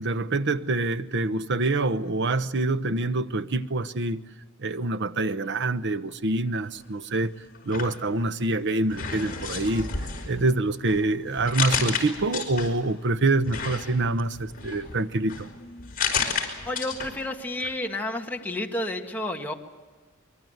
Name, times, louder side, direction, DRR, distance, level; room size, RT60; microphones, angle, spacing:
voice 1, 0.0-4.2 4.6-7.3 7.7-9.9 10.2-15.5, right 2 dB, 60° right, 1.0 m, -26 dB
sound 1, 7.5-8.5 8.9-13.0 13.5-17.3 17.6-17.7, left 5 dB, 45° left, 5.3 m, -32 dB
voice 2, 16.7-19.5, left 1 dB, 10° left, 1.9 m, -31 dB
24.5 x 23.5 x 8.0 m
head